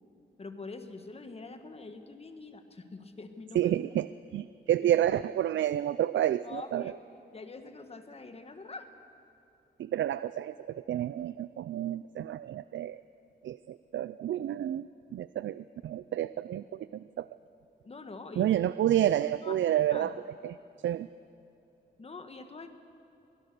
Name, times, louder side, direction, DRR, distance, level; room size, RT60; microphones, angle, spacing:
voice 1, 0.4-3.7 4.9-5.0 6.4-6.9 7.3-8.9 17.8-18.5 19.4-20.2 22.0-22.7, left 3 dB, 30° left, 7 dB, 1.5 m, -44 dB
voice 2, 3.5-6.9 9.8-13.0 13.4-17.3 18.4-20.1 20.4-20.6 20.8-21.1, right 11 dB, 90° right, 15 dB, 0.4 m, -30 dB
22.5 x 16.5 x 6.8 m, 2.8 s
wide cardioid pair, 140°, 19 cm